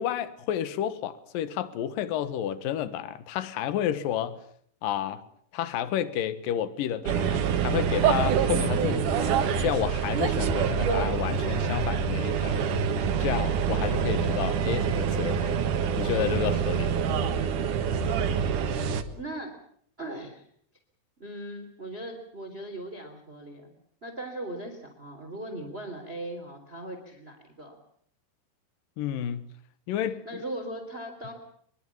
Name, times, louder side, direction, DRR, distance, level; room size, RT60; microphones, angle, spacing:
voice 1, 0.0-4.4 4.8-5.2 5.5-12.7 13.2-15.7 16.0-17.0 29.0-29.4 29.9-30.4, left 10 dB, 65° left, 2.4 m, -31 dB
sound 1, 7.1-19.0, right 7 dB, 60° right, 2.2 m, -26 dB
voice 2, 19.1-19.6 20.0-20.5 21.2-23.7 24.0-27.8 30.2-31.3, right 1 dB, 15° right, 2.7 m, -39 dB
24.5 x 23.0 x 7.3 m
omnidirectional pair, 5.5 m